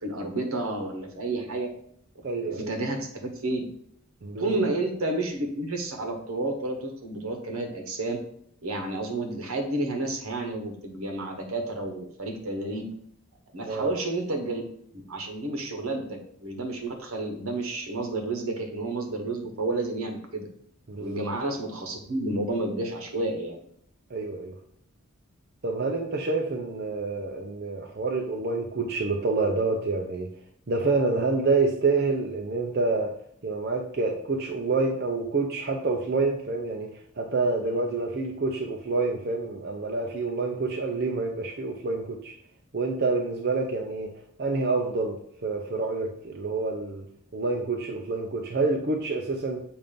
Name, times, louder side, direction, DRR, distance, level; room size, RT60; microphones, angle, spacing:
voice 1, 0.0-1.7 2.4-3.7 4.4-8.2 8.6-12.9 13.5-14.6 14.9-20.5 21.0-23.6, right 2 dB, 70° right, 4 dB, 1.1 m, -30 dB
voice 2, 2.2-2.7 4.2-4.5 13.6-13.9 20.9-21.2 24.1-24.5 25.6-30.3 30.7-33.1 33.4-42.3 42.7-44.1 44.4-47.0 47.3-49.6, right 3 dB, 45° right, 1 dB, 0.5 m, -27 dB
7.0 x 2.6 x 5.2 m, 0.67 s
head